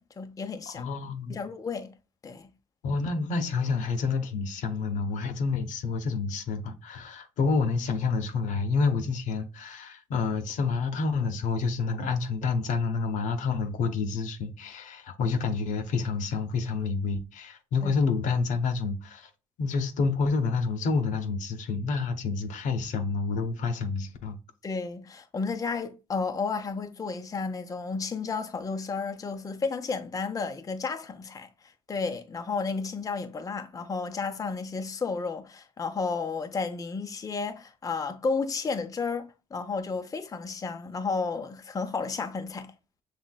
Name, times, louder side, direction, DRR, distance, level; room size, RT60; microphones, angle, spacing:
voice 1, 0.0-0.9 1.3-1.9 2.2-2.5 17.8-17.9 24.6-31.5 31.9-42.7, left 4 dB, 25° left, 0.5 m, -32 dB
voice 2, 0.7-1.4 2.8-19.3 19.6-24.4, left 4 dB, 80° left, 0.8 m, -28 dB
6.1 x 3.2 x 2.3 m
cardioid pair, 100°, 13 cm